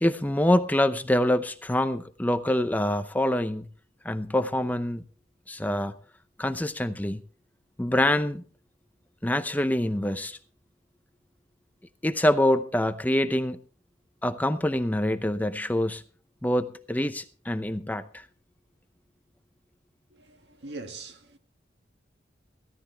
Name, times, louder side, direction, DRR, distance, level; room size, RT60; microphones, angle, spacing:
voice 1, 0.0-3.7 4.0-5.0 5.5-5.9 6.4-7.2 7.8-8.4 9.2-10.4 12.0-13.6 14.2-16.0 16.4-18.2, left 1 dB, 10° left, 0.6 m, -25 dB
voice 2, 20.1-21.4, right 3 dB, 70° right, 1.8 m, -42 dB
17.0 x 13.5 x 3.4 m
head